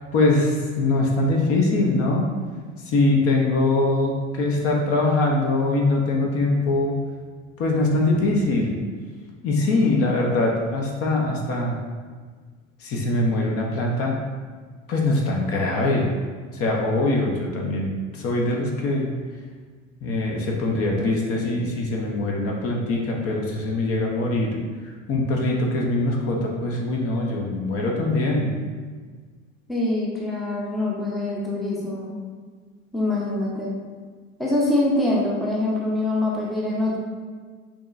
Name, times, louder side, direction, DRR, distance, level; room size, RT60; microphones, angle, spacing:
voice 1, 0.1-2.3 2.9-6.9 7.6-8.8 9.4-11.8 12.8-14.2 14.9-16.1 16.5-19.1 20.0-24.5 25.1-28.5, left 2 dB, 35° left, 0 dB, 0.8 m, -22 dB
voice 2, 29.7-32.1 32.9-33.7 34.4-37.0, left 2 dB, ahead, -4 dB, 0.7 m, -24 dB
6.1 x 3.0 x 2.5 m, 1.5 s
figure-of-eight pair, 75°, 39 cm